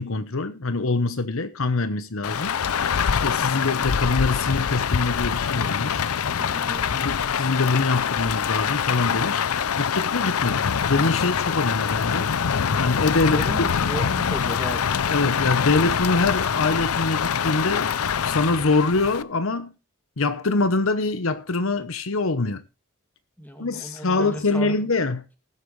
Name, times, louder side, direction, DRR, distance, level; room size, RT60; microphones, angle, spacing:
voice 1, 0.0-2.6 3.1-6.0 6.9-9.4 9.8-12.3 12.8-13.7 15.1-19.7 20.2-22.6 23.6-25.3, left 3 dB, 70° left, 1.0 m, -24 dB
Rain, 2.2-19.2, left 7 dB, 85° left, 0.6 m, -24 dB
voice 2, 6.3-7.1 13.2-15.0 23.4-24.8, equal, 10° left, 2.4 m, -35 dB
19.5 x 8.5 x 3.2 m
head